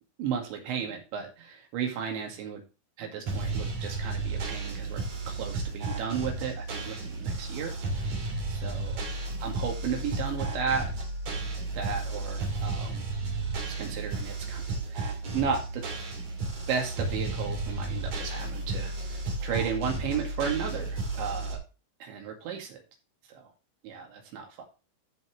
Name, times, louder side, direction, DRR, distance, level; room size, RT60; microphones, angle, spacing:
voice 1, 0.2-2.6 3.0-8.9 9.4-10.9 11.7-13.0 13.8-14.6 14.9-15.8 16.7-21.6 22.0-22.8 23.3-23.5 23.8-24.6, right 6 dB, 65° right, 2 dB, 4.1 m, -34 dB
sound 1, 3.3-21.6, right 3 dB, 40° right, 2.9 m, -33 dB
14.5 x 5.6 x 3.2 m, 0.31 s
omnidirectional pair, 6.0 m